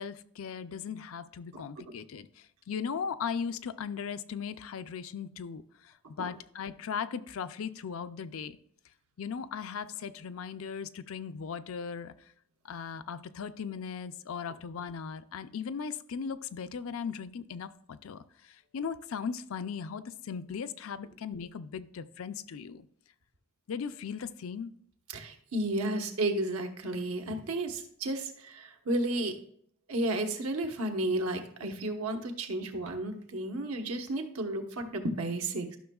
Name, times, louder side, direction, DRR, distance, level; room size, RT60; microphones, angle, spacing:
voice 1, 0.0-8.6 9.2-12.1 12.6-22.9 23.7-24.7, left 6 dB, 70° left, 12 dB, 0.4 m, -38 dB
voice 2, 25.1-29.4 29.9-35.8, right 1 dB, 85° right, 4 dB, 1.2 m, -32 dB
13.0 x 6.1 x 2.3 m, 0.65 s
head